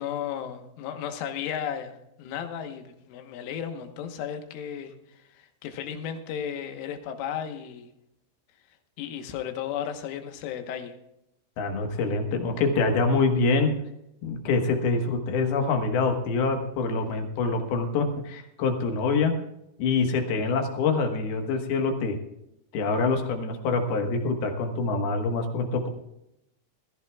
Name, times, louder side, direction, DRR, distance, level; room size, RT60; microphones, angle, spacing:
voice 1, 0.0-7.9 9.0-10.9, left 9 dB, 80° left, 6 dB, 3.8 m, -34 dB
voice 2, 11.6-13.7 14.2-19.3 19.8-22.2 22.7-25.9, left 4 dB, 65° left, 4 dB, 2.8 m, -25 dB
20.5 x 14.5 x 2.4 m, 0.83 s
omnidirectional pair, 5.6 m